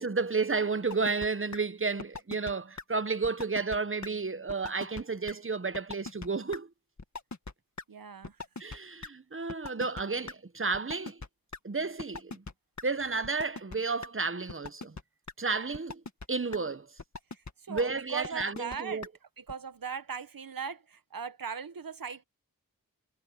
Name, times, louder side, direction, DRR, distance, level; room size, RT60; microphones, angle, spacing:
voice 1, 0.0-6.7 8.6-11.2 11.6-12.4 12.8-15.0 15.4-16.0 16.3-16.9 17.7-19.1, right 4 dB, 40° right, 1.1 m, -32 dB
sound 1, 0.9-1.3 1.5-1.6 2.0-2.5 2.8-2.9 3.2-3.8 4.0-4.1 4.5-5.0 5.3-5.4 5.7-6.3 6.5-6.6 7.0-7.5 7.8-7.9 8.2-9.1 9.5-10.3 10.7-11.6 12.0-12.5 12.8-12.9 13.2-13.8 14.0-14.1 14.5-15.0 15.3-15.4 15.7-16.3 16.5-16.6 17.0-17.5 17.8-17.9 18.2-18.8 19.0-19.1 19.5-19.6, left 3 dB, 55° left, 1.9 m, -40 dB
voice 2, 7.9-8.3 17.7-19.0 19.5-22.2, right 6 dB, 85° right, 1.1 m, -39 dB
cardioid pair, 40°, 34 cm